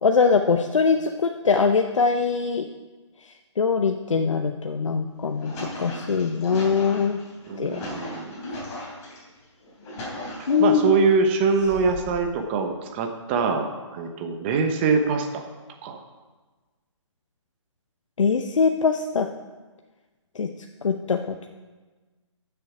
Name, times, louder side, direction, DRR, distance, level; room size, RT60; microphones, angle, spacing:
voice 1, 0.0-2.7 3.6-7.2 7.6-7.8 10.5-11.0 18.2-19.3 20.3-20.5 20.8-21.5, left 5 dB, 75° left, 5 dB, 0.8 m, -22 dB
sound 1, 5.1-9.2 9.6-10.9 11.5-12.2, left 1 dB, 20° left, 3.3 m, -37 dB
voice 2, 7.5-8.4 10.6-15.4 15.8-16.0, right 4 dB, 20° right, 5 dB, 0.9 m, -23 dB
13.0 x 7.1 x 4.9 m, 1.3 s
hypercardioid pair, 155°, 16 cm